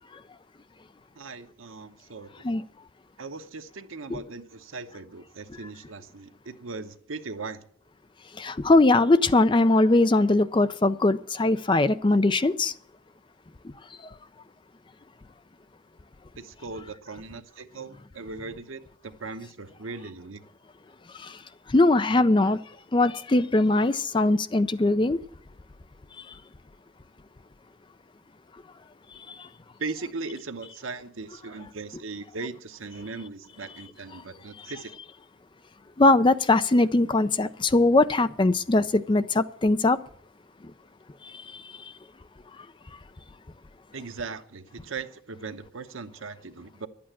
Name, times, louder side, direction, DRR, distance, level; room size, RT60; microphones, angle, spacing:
voice 1, 1.2-2.3 3.2-7.6 16.4-20.4 29.8-34.9 43.9-46.9, right 4 dB, 85° right, 1.0 m, -38 dB
voice 2, 8.4-12.7 21.7-22.6 22.9-25.2 36.0-40.0, left 2 dB, 25° left, 0.4 m, -21 dB
11.5 x 8.7 x 7.3 m
head